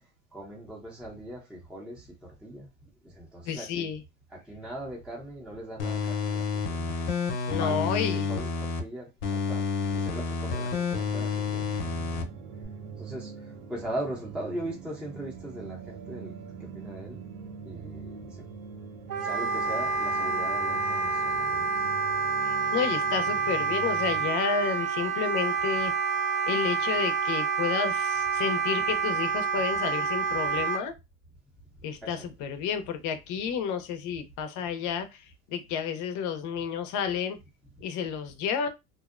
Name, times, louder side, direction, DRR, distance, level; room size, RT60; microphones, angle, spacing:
voice 1, 0.3-2.1 2.4-2.7 3.1-3.9 4.3-6.9 7.6-9.6 9.9-11.6 13.0-16.3 16.7-17.2 17.7-18.4 19.2-21.7 32.0-32.3, right 1 dB, 5° right, 0.6 m, -39 dB
voice 2, 3.5-4.0 7.5-8.3 22.4-25.9 26.5-30.9 31.8-35.1 35.5-37.4 37.8-38.7, left 7 dB, 45° left, 0.6 m, -31 dB
sound 1, 5.8-8.8 9.2-12.2 12.6-12.7, left 5 dB, 85° left, 0.7 m, -29 dB
sound 2, 10.9-24.3, right 5 dB, 90° right, 0.7 m, -43 dB
Wind instrument woodwind instrument, 19.1-30.8, right 5 dB, 50° right, 0.7 m, -28 dB
2.6 x 2.0 x 2.4 m
supercardioid pair, 130°, 41 cm